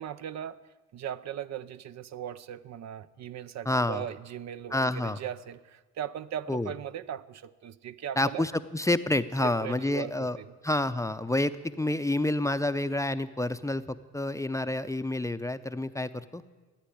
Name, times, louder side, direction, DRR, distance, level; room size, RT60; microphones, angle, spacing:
voice 1, 0.0-8.5 9.4-10.5, right 9 dB, 60° right, 13 dB, 0.6 m, -39 dB
voice 2, 3.7-4.0 4.7-5.2 6.5-6.7 8.2-10.4 10.6-16.4, left 1 dB, 10° left, 12 dB, 0.6 m, -28 dB
15.0 x 9.6 x 10.0 m, 1.3 s
cardioid pair, 90°, 30 cm